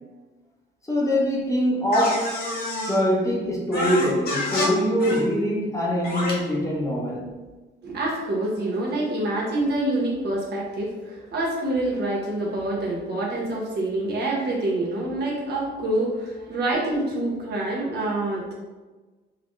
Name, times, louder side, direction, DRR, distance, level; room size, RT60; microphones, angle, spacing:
voice 1, 0.9-2.3 2.8-7.3, equal, 15° left, -4 dB, 0.8 m, -23 dB
sound 1, 1.9-3.0 3.7-4.7 5.0-5.2 6.0-6.3, left 2 dB, 55° left, 1.2 m, -27 dB
voice 2, 7.8-18.5, right 1 dB, 55° right, -3 dB, 1.1 m, -26 dB
3.9 x 2.2 x 3.1 m, 1.2 s
cardioid pair, 90°, 20 cm